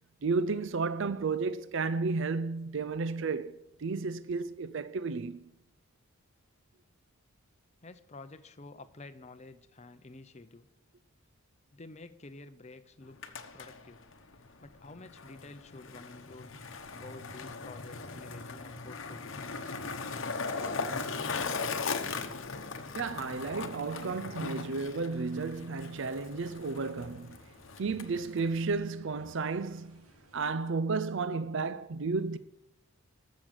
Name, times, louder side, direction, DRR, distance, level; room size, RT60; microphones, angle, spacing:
voice 1, 0.2-3.5 3.8-5.4 20.6-20.8 22.9-27.4 27.8-30.0 30.3-32.4, right 4 dB, 55° right, 0.5 m, -32 dB
voice 2, 7.8-10.7 11.7-14.0 14.6-16.5 16.8-19.4, left 3 dB, 30° left, 0.6 m, -50 dB
Skateboard, 13.0-28.7, left 4 dB, 60° left, 1.0 m, -39 dB
sound 1, 19.5-30.5, right 2 dB, 85° right, 2.4 m, -60 dB
13.5 x 6.4 x 9.0 m
head